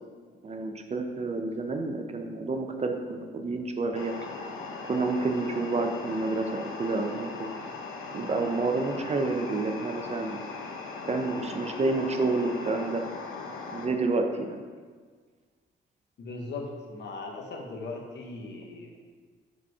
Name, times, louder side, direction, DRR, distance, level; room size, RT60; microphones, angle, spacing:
voice 1, 0.4-4.1 4.8-7.5 8.1-10.4 11.1-13.0 13.7-14.6, right 3 dB, 35° right, 4 dB, 0.6 m, -29 dB
sound 1, 4.0-13.9, left 4 dB, 85° left, 0.8 m, -39 dB
voice 2, 16.2-19.0, left 3 dB, 60° left, 1 dB, 1.1 m, -38 dB
5.0 x 4.3 x 4.7 m, 1.5 s
cardioid pair, 90°, 20 cm